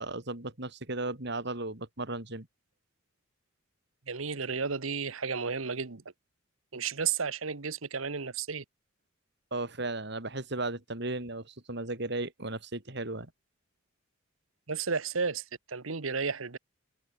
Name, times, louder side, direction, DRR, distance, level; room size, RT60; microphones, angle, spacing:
voice 1, 0.0-2.5 9.5-13.3, right 2 dB, 55° right, 3.7 m, -35 dB
voice 2, 4.1-6.0 6.7-8.6 14.7-16.6, right 5 dB, 85° right, 1.3 m, -33 dB
open air
head